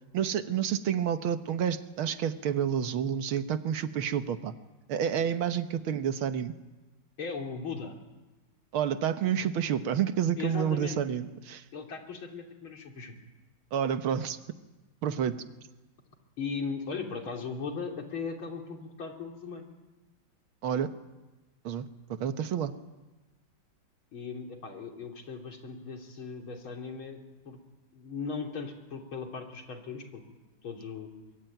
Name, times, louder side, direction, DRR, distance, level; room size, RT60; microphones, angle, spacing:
voice 1, 0.1-4.5 4.9-6.5 8.7-11.6 13.7-14.4 15.0-15.3 20.6-20.9 21.6-21.9 22.2-22.7, right 8 dB, 90° right, 10 dB, 2.0 m, -29 dB
voice 2, 7.2-7.9 10.4-11.0 11.7-13.1 16.4-19.7 24.1-27.6 27.9-30.2 30.6-31.1, left 5 dB, 80° left, 3 dB, 4.0 m, -38 dB
24.0 x 22.5 x 9.3 m, 1.1 s
omnidirectional pair, 2.2 m